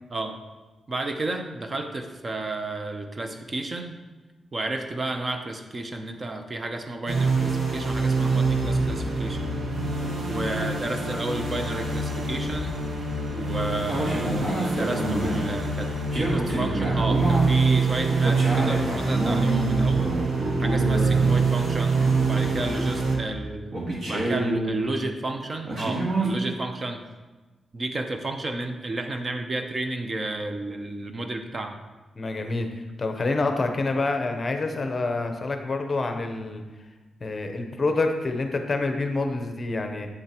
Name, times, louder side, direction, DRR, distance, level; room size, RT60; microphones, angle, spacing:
voice 1, 0.9-4.0 4.5-9.4 10.2-12.8 13.3-20.1 20.6-23.7 24.1-27.0 27.7-31.8, right 2 dB, 30° right, 5 dB, 0.6 m, -32 dB
sound 1, 7.1-23.2, right 4 dB, 70° right, 1.2 m, -25 dB
sound 2, 13.8-15.4 16.1-17.5 18.1-21.5 21.9-23.1 23.7-24.9 25.6-26.3, right 1 dB, 55° right, 1.6 m, -28 dB
voice 2, 32.2-36.6 37.2-40.1, left 3 dB, 35° left, 5 dB, 0.7 m, -27 dB
7.9 x 7.2 x 2.9 m, 1.2 s
wide cardioid pair, 125°, 0 cm